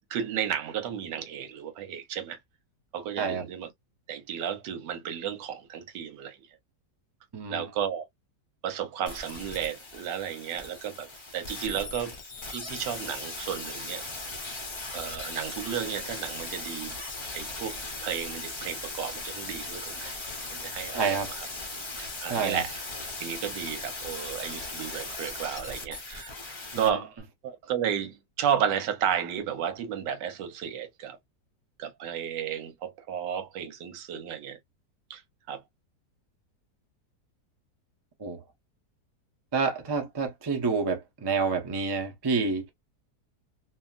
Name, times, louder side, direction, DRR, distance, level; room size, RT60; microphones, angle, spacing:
voice 1, 0.1-2.4 2.9-3.7 4.1-6.4 7.5-8.1 8.6-11.1 11.3-12.1 12.5-14.0 14.9-16.9 17.3-20.1 20.5-21.5 22.0-22.8 23.2-26.3 26.8-27.1 27.4-31.2 31.8-34.6 35.1-35.2 35.5-35.6, right 8 dB, 80° right, 1.4 m, -33 dB
voice 2, 7.3-7.6 20.9-21.3 22.3-22.6 26.7-27.0 38.2-38.4 39.5-42.7, right 4 dB, 35° right, 0.3 m, -28 dB
sound 1, 9.1-26.9 27.2-27.3, left 2 dB, 35° left, 0.4 m, -38 dB
2.8 x 2.7 x 2.3 m
omnidirectional pair, 1.9 m